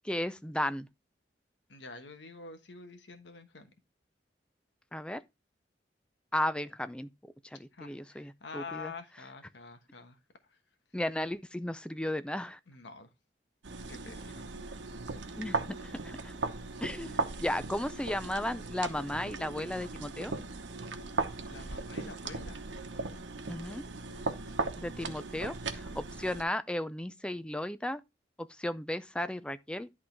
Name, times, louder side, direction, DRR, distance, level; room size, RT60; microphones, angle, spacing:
voice 1, 0.0-0.9 4.9-5.2 6.3-7.1 7.5-8.9 10.9-12.6 15.4-16.3 16.8-20.3 23.5-23.8 24.8-28.0 28.4-29.9, left 1 dB, 5° left, 0.4 m, -35 dB
voice 2, 1.7-3.7 7.8-10.2 12.7-13.1 13.9-14.4 21.5-22.6, left 4 dB, 80° left, 1.2 m, -47 dB
sound 1, 13.6-26.4, right 3 dB, 85° right, 1.0 m, -38 dB
11.0 x 3.7 x 4.5 m
head